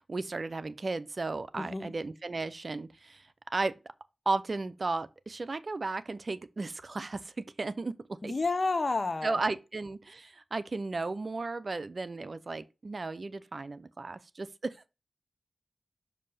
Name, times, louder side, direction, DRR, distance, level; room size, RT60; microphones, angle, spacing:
voice 1, 0.0-3.8 4.3-8.3 9.2-14.8, right 3 dB, 55° right, 0.5 m, -35 dB
voice 2, 1.6-1.9 8.2-9.4, left 3 dB, 45° left, 0.7 m, -30 dB
6.4 x 2.8 x 5.5 m
cardioid pair, 45°, 0 cm